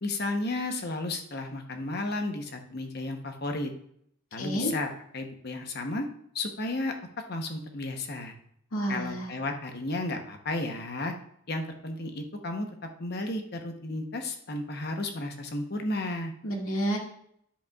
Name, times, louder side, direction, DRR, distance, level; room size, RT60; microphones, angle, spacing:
voice 1, 0.0-3.7 4.3-4.9 5.1-6.1 6.3-6.9 7.3-8.3 8.9-11.1 11.5-16.3, left 2 dB, 45° left, 5 dB, 0.9 m, -33 dB
voice 2, 4.4-4.7 8.7-9.3 16.4-17.0, right 1 dB, 85° left, -1 dB, 2.1 m, -29 dB
10.0 x 7.8 x 2.4 m, 0.69 s
head